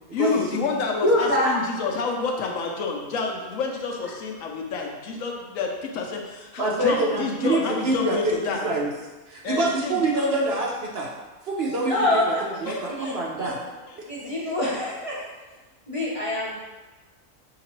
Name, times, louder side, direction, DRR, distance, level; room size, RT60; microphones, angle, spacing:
voice 1, 0.1-8.7 9.4-10.1 12.6-13.6 13.9-14.0, left 4 dB, 70° left, 1 dB, 0.9 m, -29 dB
voice 2, 1.0-1.5 11.8-12.4 12.9-13.5 14.1-15.2 15.9-16.6, left 1 dB, 35° left, -7 dB, 0.6 m, -24 dB
voice 3, 6.6-8.9 9.3-11.1 11.4-13.6 14.0-14.5, right 2 dB, 65° right, -2 dB, 0.6 m, -26 dB
5.6 x 2.9 x 3.0 m, 1.2 s
omnidirectional pair, 1.5 m